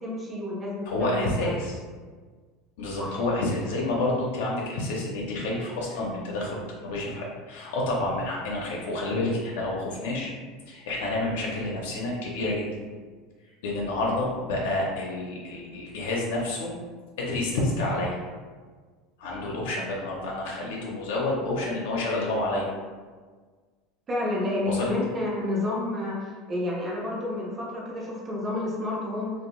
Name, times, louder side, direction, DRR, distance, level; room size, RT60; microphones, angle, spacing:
voice 1, 0.0-1.6 3.0-3.1 24.1-29.3, left 2 dB, 20° right, -4 dB, 0.6 m, -30 dB
voice 2, 0.9-1.8 2.8-10.3 10.7-12.8 13.6-16.7 17.2-18.2 19.2-22.7 24.6-24.9, left 2 dB, 90° left, -3 dB, 0.5 m, -29 dB
2.7 x 2.0 x 3.0 m, 1.5 s
supercardioid pair, 155°, 0 cm